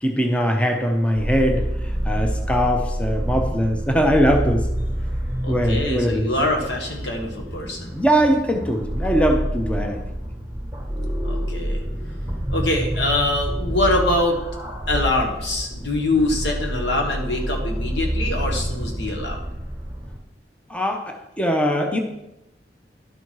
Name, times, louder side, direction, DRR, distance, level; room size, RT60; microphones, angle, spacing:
voice 1, 0.0-1.7 2.0-4.7 5.5-6.3 7.9-10.0 20.7-22.0, equal, 5° left, 4 dB, 0.6 m, -21 dB
sound 1, 1.2-20.2, equal, 10° right, 1.4 m, -28 dB
voice 2, 5.4-7.9 11.2-11.8 12.5-14.4 14.9-19.4, left 2 dB, 85° left, 2 dB, 1.6 m, -24 dB
11.0 x 4.3 x 4.6 m, 0.90 s
head